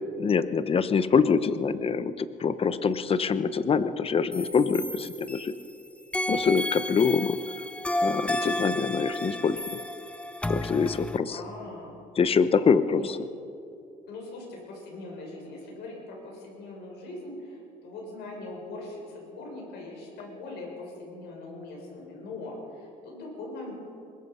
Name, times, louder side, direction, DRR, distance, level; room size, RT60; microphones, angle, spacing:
voice 1, 0.2-5.5 6.3-7.4 8.0-9.6 10.5-11.4 12.2-13.2, left 5 dB, 35° left, 13 dB, 0.9 m, -25 dB
sound 1, 4.3-5.7 6.1-11.2, left 1 dB, 5° left, 0.7 m, -32 dB
voice 2, 11.3-11.9 12.8-13.3 14.1-23.7, left 2 dB, 75° left, 0 dB, 6.7 m, -41 dB
23.0 x 20.5 x 5.6 m, 2.7 s
cardioid pair, 110°, 17 cm